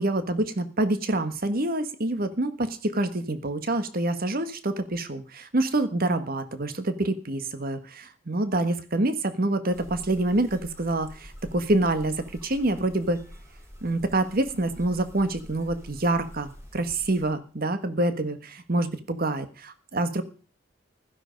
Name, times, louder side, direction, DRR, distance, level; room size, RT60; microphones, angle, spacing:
voice 1, 0.0-12.1 12.4-13.2 13.8-20.2, right 2 dB, 50° right, 10 dB, 1.5 m, -26 dB
sound 1, 9.7-17.3, equal, 15° right, 3.7 m, -46 dB
15.5 x 13.0 x 5.2 m, 0.38 s
head